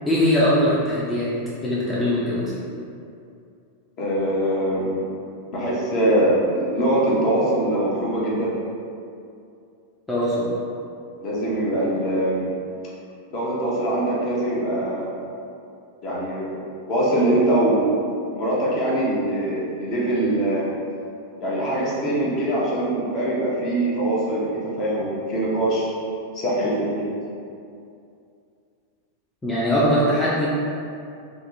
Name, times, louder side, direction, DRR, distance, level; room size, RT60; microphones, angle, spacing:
voice 1, 0.1-1.3 1.6-2.6 10.1-10.5 29.4-30.5, equal, 10° left, -9 dB, 0.5 m, -21 dB
voice 2, 4.0-5.0 5.5-8.5 11.2-12.5 13.3-15.2 16.0-16.6 16.9-17.9 18.3-20.7 21.4-25.9 26.3-27.0, right 1 dB, 40° left, -6 dB, 0.8 m, -23 dB
3.4 x 2.1 x 2.7 m, 2.5 s
figure-of-eight pair, 90°, 0 cm